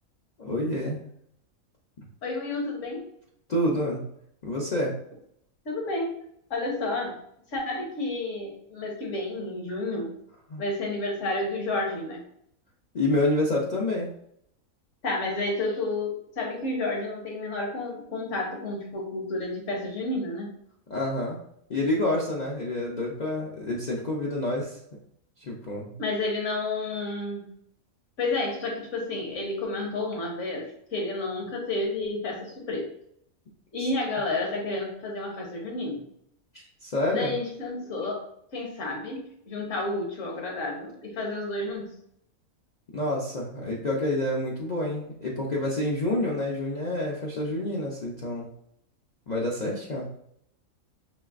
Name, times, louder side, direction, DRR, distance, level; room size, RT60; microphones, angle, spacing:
voice 1, 0.4-1.0 3.5-4.0 4.4-4.9 10.5-10.6 12.9-14.1 20.9-21.4 21.7-24.8 25.4-26.0 33.8-33.9 36.5-37.3 42.9-48.5 49.3-50.1, left 1 dB, 45° left, -4 dB, 0.5 m, -28 dB
voice 2, 2.2-3.0 5.6-6.2 6.5-7.2 7.5-10.1 10.6-12.2 15.0-20.5 26.0-27.5 28.2-32.9 33.7-36.0 37.1-38.2 38.5-42.0, left 2 dB, 65° left, 0 dB, 1.4 m, -31 dB
5.1 x 3.2 x 2.4 m, 0.70 s
omnidirectional pair, 1.4 m